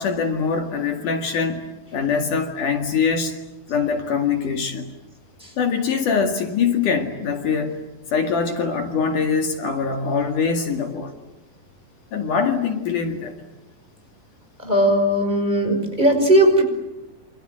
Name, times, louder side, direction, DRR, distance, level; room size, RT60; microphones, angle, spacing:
voice 1, 0.0-1.6 1.9-3.3 3.7-4.9 5.6-7.8 8.1-11.1 12.1-13.4, left 5 dB, 65° left, 5 dB, 3.5 m, -23 dB
voice 2, 14.6-16.6, right 1 dB, 10° right, 4 dB, 5.5 m, -18 dB
28.0 x 27.0 x 7.8 m, 1.0 s
omnidirectional pair, 4.1 m